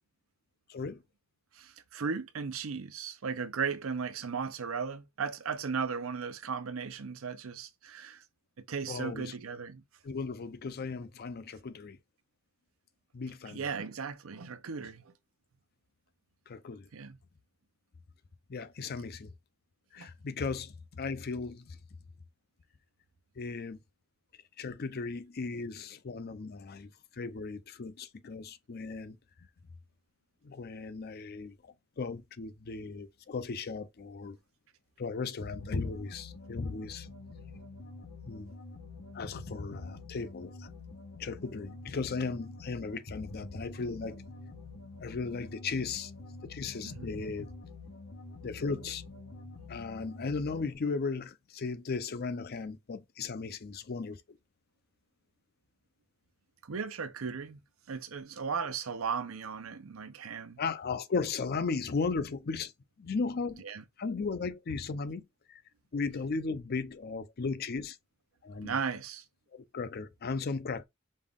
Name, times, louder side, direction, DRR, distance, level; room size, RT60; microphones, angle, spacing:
voice 1, 0.7-1.0 8.9-9.3 10.0-12.0 13.1-13.7 16.5-16.9 18.5-19.3 19.9-21.8 23.4-23.8 24.6-29.2 30.4-31.6 32.0-34.4 35.0-37.1 38.3-38.5 39.1-40.7 41.2-44.2 45.0-46.1 46.5-47.5 48.4-49.0 49.7-54.4 60.6-62.7 63.0-63.6 64.0-65.2 65.5-65.6 65.9-68.0 68.4-68.8 69.5-70.8, left 4 dB, 50° left, 0.5 m, -36 dB
voice 2, 1.6-8.2 8.7-9.8 13.5-15.0 16.9-17.2 20.0-20.1 46.8-47.1 56.7-57.6 57.9-60.6 63.6-63.8 68.6-69.2, right 5 dB, 90° right, 0.6 m, -36 dB
sound 1, 35.4-50.8, left 2 dB, 85° left, 0.9 m, -46 dB
5.4 x 2.4 x 3.5 m
head